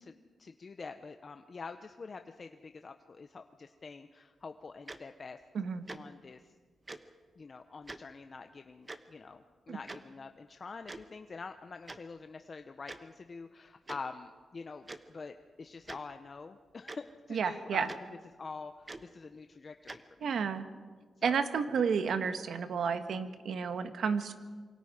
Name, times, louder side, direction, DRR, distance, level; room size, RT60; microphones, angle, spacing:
voice 1, 0.0-5.4 5.9-6.4 7.4-17.9 18.4-20.3 21.2-21.4, left 4 dB, 40° left, 7 dB, 0.8 m, -46 dB
Tick-tock, 4.9-5.0 5.9-6.0 6.9-7.0 7.9-8.0 8.9-9.0 9.9-10.0 10.9-11.0 11.9-12.0 12.9-13.0 13.9-14.0 14.9-15.0 15.8-16.0 16.9-17.0 17.9-18.0 18.9-19.0 19.9-20.0, right 2 dB, 25° right, 1.1 m, -43 dB
voice 2, 17.3-17.9 20.2-20.6 21.2-24.3, right 6 dB, 75° right, 9 dB, 1.5 m, -31 dB
27.0 x 24.0 x 5.0 m, 1.5 s
wide cardioid pair, 115°, 0 cm